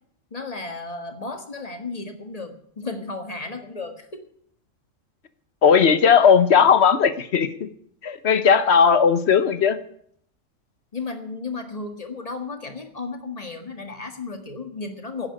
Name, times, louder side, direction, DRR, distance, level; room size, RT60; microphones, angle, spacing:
voice 1, 0.3-4.2 10.9-15.3, left 3 dB, 30° left, 6 dB, 1.8 m, -34 dB
voice 2, 5.6-7.7 8.0-9.8, left 6 dB, 60° left, 12 dB, 1.2 m, -17 dB
11.5 x 9.8 x 8.8 m, 0.65 s
omnidirectional pair, 1.3 m